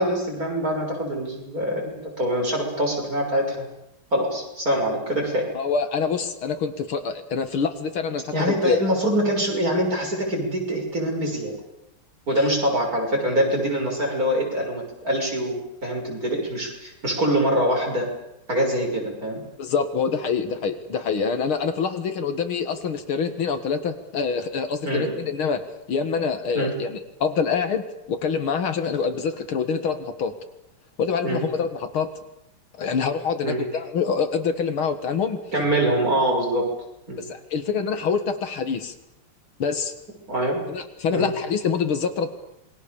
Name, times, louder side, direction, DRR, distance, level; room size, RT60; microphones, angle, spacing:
voice 1, 0.0-3.7 4.1-5.5 8.3-11.5 12.3-18.1 18.5-19.4 24.8-25.3 26.5-26.7 31.2-31.4 33.4-33.6 35.5-36.7 37.1-37.2 40.3-40.6 41.1-41.3, right 1 dB, 40° right, 0 dB, 6.9 m, -24 dB
voice 2, 5.5-8.8 19.6-25.6 25.9-30.3 31.0-32.1 32.8-35.4 35.7-35.8 37.2-38.9 39.6-39.9 40.7-42.3, left 5 dB, 70° left, 8 dB, 2.5 m, -26 dB
27.5 x 22.5 x 7.0 m, 0.84 s
omnidirectional pair, 2.4 m